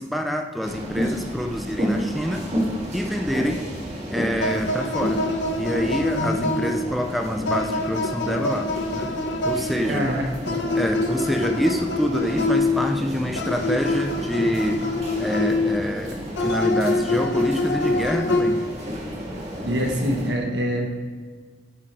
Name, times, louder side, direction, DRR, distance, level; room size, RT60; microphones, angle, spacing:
voice 1, 0.0-2.5 2.9-3.7 4.1-5.2 5.6-9.1 9.4-10.1 10.7-14.9 15.2-18.6, equal, ahead, 3 dB, 0.3 m, -26 dB
sound 1, 0.6-20.3, equal, 40° right, 1.8 m, -32 dB
sound 2, 4.4-7.0 7.4-9.9 10.5-13.0 13.4-15.8 16.4-18.8, left 2 dB, 70° left, 0.7 m, -25 dB
voice 2, 9.9-10.6 19.6-20.9, equal, 70° right, 1 dB, 1.3 m, -25 dB
7.5 x 4.9 x 4.4 m, 1.5 s
head